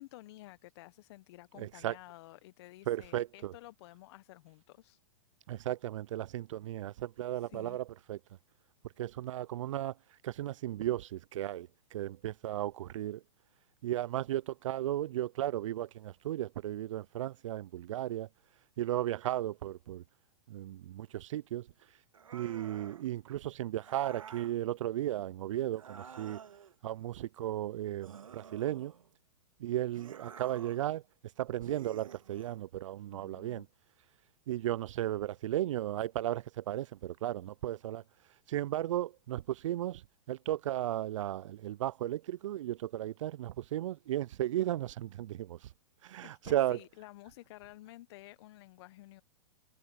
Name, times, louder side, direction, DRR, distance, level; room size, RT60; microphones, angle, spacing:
voice 1, 0.0-5.0 7.3-7.8 33.1-33.7 46.2-49.2, left 18 dB, 55° left, 1.1 m, -52 dB
voice 2, 1.6-2.0 2.9-3.5 5.5-8.2 9.0-9.9 10.2-13.2 13.8-18.3 18.8-20.0 20.5-21.7 22.3-26.4 26.8-28.9 29.6-31.0 31.4-33.7 34.5-38.0 38.5-40.0 40.3-45.7 46.0-46.8, right 13 dB, 70° right, 0.4 m, -35 dB
sound 1, 22.1-23.1 23.8-24.6 25.7-26.7 28.0-29.1 29.9-30.9 31.6-32.6, right 7 dB, 85° right, 2.2 m, -50 dB
hypercardioid pair, 120°, 17 cm